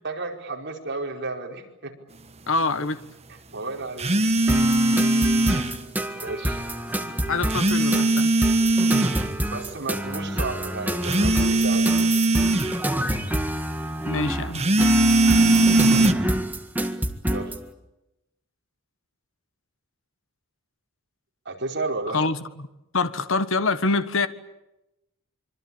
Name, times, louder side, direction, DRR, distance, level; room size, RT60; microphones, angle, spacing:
voice 1, 0.0-1.9 3.5-4.1 6.2-6.6 9.5-12.1 17.3-17.6 21.4-22.2, right 3 dB, 55° right, 5.0 m, -32 dB
voice 2, 2.5-3.0 5.5-5.8 7.0-8.3 14.1-14.7 22.1-22.7 22.9-24.3, left 3 dB, 65° left, 1.5 m, -26 dB
sound 1, 4.0-5.7 7.5-9.2 11.0-12.7 14.5-16.1, right 2 dB, 30° right, 1.4 m, -20 dB
sound 2, 4.5-17.6, equal, 10° right, 1.8 m, -27 dB
26.0 x 24.5 x 8.8 m
head